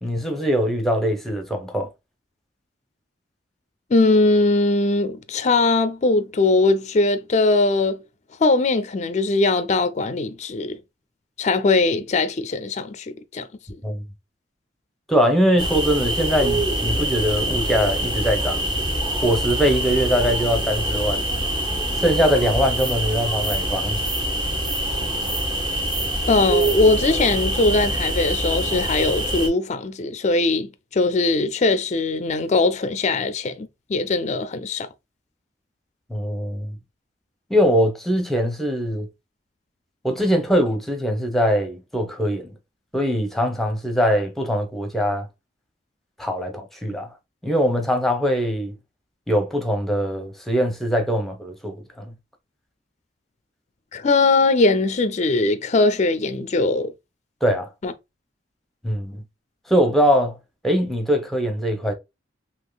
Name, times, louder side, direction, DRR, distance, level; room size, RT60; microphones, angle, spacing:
voice 1, 0.0-1.9 13.8-14.1 15.1-18.7 19.1-21.2 22.0-24.0 36.1-36.8 37.5-39.1 40.0-42.5 42.9-45.3 46.2-47.1 47.4-48.7 49.3-52.1 57.4-57.7 58.8-59.2 59.7-60.3 60.6-61.9, equal, ahead, 0.8 m, -22 dB
voice 2, 3.9-8.0 8.4-10.8 11.4-13.5 26.3-34.9 53.9-56.9 57.8-57.9, left 3 dB, 40° left, 0.4 m, -20 dB
sound 1, 15.6-29.5, right 1 dB, 25° right, 0.9 m, -24 dB
3.6 x 2.8 x 2.3 m
head